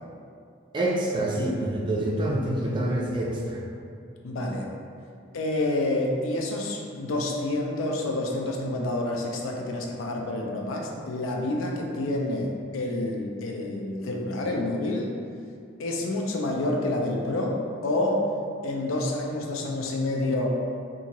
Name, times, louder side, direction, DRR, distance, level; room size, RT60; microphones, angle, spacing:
voice 1, 0.7-3.6, right 1 dB, 25° right, -3 dB, 0.3 m, -26 dB
voice 2, 4.2-4.7 5.3-15.1 15.8-18.3 18.6-20.5, left 1 dB, 80° left, 0 dB, 0.4 m, -28 dB
2.7 x 2.4 x 2.9 m, 2.4 s
head